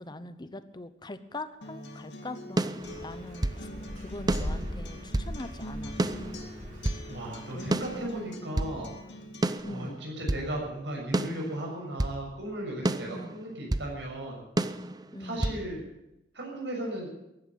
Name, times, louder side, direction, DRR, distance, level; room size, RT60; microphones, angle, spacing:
voice 1, 0.0-3.7 4.0-6.0 7.5-7.8 9.6-10.0 13.1-13.4 15.1-15.4, left 2 dB, 25° left, 12 dB, 0.9 m, -42 dB
Acoustic guitar, 1.6-9.6, left 1 dB, 70° left, 2.3 m, -43 dB
sound 1, 2.6-3.6 4.3-5.4 6.0-7.1 7.7-8.8 9.4-10.5 11.1-12.2 12.8-13.9 14.6-15.6, right 1 dB, 20° right, 0.6 m, -30 dB
sound 2, 2.8-8.2, equal, 45° right, 7.1 m, -40 dB
voice 2, 7.1-8.9 9.6-14.5 15.2-15.8 16.3-17.1, right 1 dB, 75° right, -1 dB, 6.9 m, -36 dB
15.0 x 11.0 x 8.5 m, 0.89 s
head